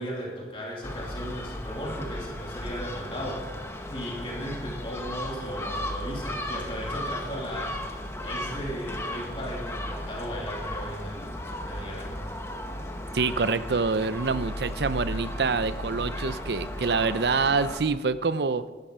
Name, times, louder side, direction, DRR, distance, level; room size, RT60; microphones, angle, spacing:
voice 1, 0.0-3.4 3.9-7.8 8.2-12.3, equal, 30° left, -3 dB, 2.6 m, -36 dB
Gull seagull, 0.8-17.8, left 1 dB, 15° left, 1.1 m, -35 dB
voice 2, 13.1-18.6, right 4 dB, 65° right, 14 dB, 0.6 m, -26 dB
14.5 x 12.0 x 5.1 m, 1.3 s
head